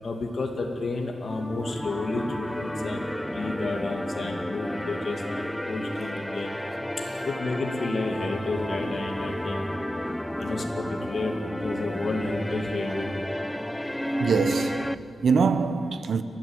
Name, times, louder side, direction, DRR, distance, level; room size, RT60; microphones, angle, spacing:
voice 1, 0.0-6.5 7.2-9.6 10.4-11.3 11.6-13.3, left 2 dB, 50° left, 2.4 m, -31 dB
sound 1, 1.2-14.9, left 1 dB, 5° left, 0.6 m, -32 dB
voice 2, 14.2-16.2, right 5 dB, 65° right, 1.1 m, -24 dB
29.5 x 12.5 x 8.2 m
cardioid pair, 90°, 0 cm